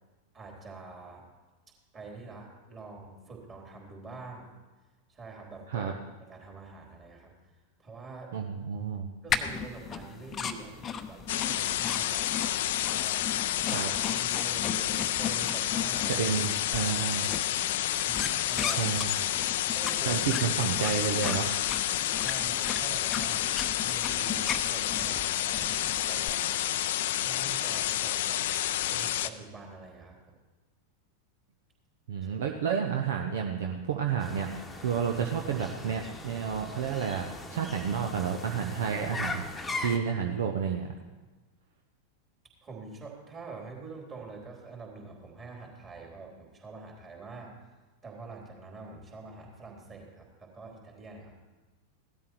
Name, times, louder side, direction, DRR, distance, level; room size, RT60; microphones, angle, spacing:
voice 1, 0.3-1.3 1.9-4.5 5.1-5.9 6.2-7.3 7.8-8.3 9.2-10.8 11.0-13.2 13.8-16.3 16.7-17.6 18.1-19.0 19.7-20.3 22.1-23.5 23.8-26.6 27.1-30.3 32.4-32.6 42.6-47.6 48.0-51.4, right 4 dB, 25° right, 0 dB, 3.9 m, -46 dB
voice 2, 8.3-9.1 13.7-13.9 16.1-17.3 18.8-19.2 20.0-21.6 32.1-40.9, right 7 dB, 60° right, 3 dB, 1.0 m, -30 dB
sound 1, 9.3-26.3, left 7 dB, 25° left, 0.8 m, -37 dB
sound 2, 11.3-29.3, left 13 dB, 55° left, 0.5 m, -29 dB
sound 3, 34.2-40.0, left 2 dB, 5° left, 1.4 m, -39 dB
16.5 x 12.5 x 4.6 m, 1.2 s
figure-of-eight pair, 90°, 0 cm